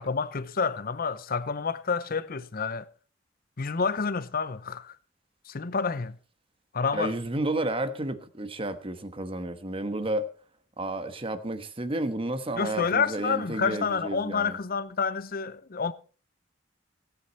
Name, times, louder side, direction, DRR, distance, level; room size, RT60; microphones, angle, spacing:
voice 1, 0.0-2.9 3.6-5.0 5.5-6.1 6.7-7.1 12.5-15.9, left 5 dB, 50° left, 0.7 m, -29 dB
voice 2, 6.9-10.3 10.8-14.6, right 1 dB, 30° right, 1.2 m, -31 dB
17.0 x 9.6 x 4.1 m
head